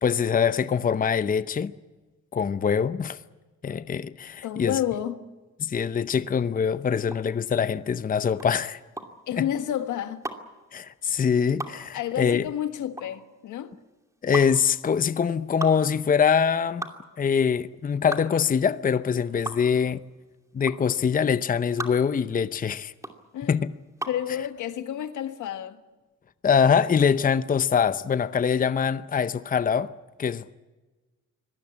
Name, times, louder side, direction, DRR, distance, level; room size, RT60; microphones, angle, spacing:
voice 1, 0.0-1.7 2.3-3.2 3.6-4.8 5.6-8.8 9.4-9.5 10.7-12.4 14.2-16.9 17.2-20.0 20.5-22.9 23.5-23.7 26.4-29.9 30.2-30.5, left 7 dB, 30° left, 0.7 m, -24 dB
voice 2, 4.4-5.2 9.3-10.2 11.9-13.7 23.3-23.6 24.1-25.8, left 10 dB, 80° left, 1.6 m, -30 dB
sound 1, 7.0-24.3, right 2 dB, 10° right, 2.6 m, -38 dB
24.5 x 18.5 x 8.6 m
cardioid pair, 90°, 30 cm